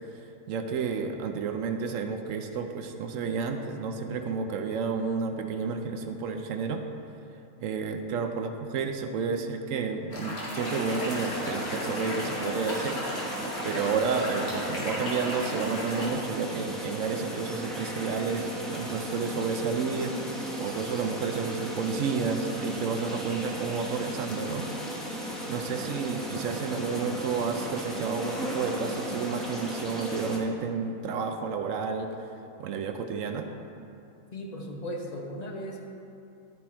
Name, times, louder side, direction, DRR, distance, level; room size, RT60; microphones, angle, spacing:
voice 1, 0.5-6.8 7.6-13.0 13.6-24.7 25.5-32.1 32.6-33.5, right 5 dB, 70° right, 5 dB, 0.9 m, -31 dB
sound 1, 10.1-16.1, left 1 dB, 85° left, 2.0 m, -35 dB
sound 2, 10.6-30.4, right 1 dB, ahead, 0.8 m, -36 dB
voice 2, 34.3-35.8, equal, 35° left, 0 dB, 0.8 m, -36 dB
12.0 x 4.4 x 4.3 m, 2.6 s
omnidirectional pair, 1.5 m